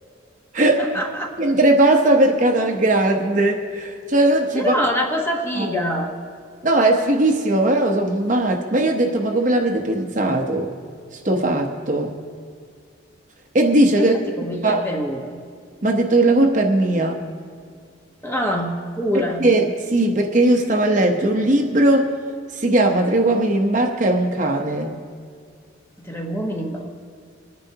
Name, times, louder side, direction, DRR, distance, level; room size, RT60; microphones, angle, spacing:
voice 1, 0.8-1.3 4.5-6.1 13.9-14.1 14.4-15.4 18.2-19.4 26.0-27.0, equal, 10° left, 1 dB, 1.1 m, -25 dB
voice 2, 1.4-4.7 5.6-5.7 6.6-10.7 11.2-12.2 13.5-14.2 14.6-14.8 15.8-17.2 19.4-22.1 22.5-24.9, right 1 dB, 40° right, 3 dB, 0.9 m, -18 dB
26.0 x 10.0 x 2.8 m, 2.2 s
head